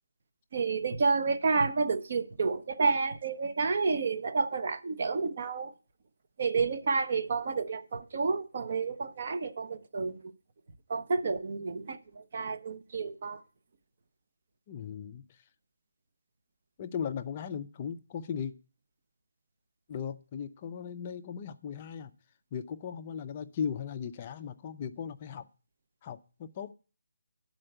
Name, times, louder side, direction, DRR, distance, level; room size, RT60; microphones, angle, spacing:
voice 1, 0.5-5.7 6.4-10.3 10.9-13.4, right 4 dB, 35° right, 0.7 m, -30 dB
voice 2, 14.7-15.4 16.8-18.5 19.9-22.1 22.5-25.5 26.0-26.7, left 7 dB, 20° left, 0.4 m, -37 dB
10.0 x 4.4 x 7.7 m
hypercardioid pair, 175°, 0 cm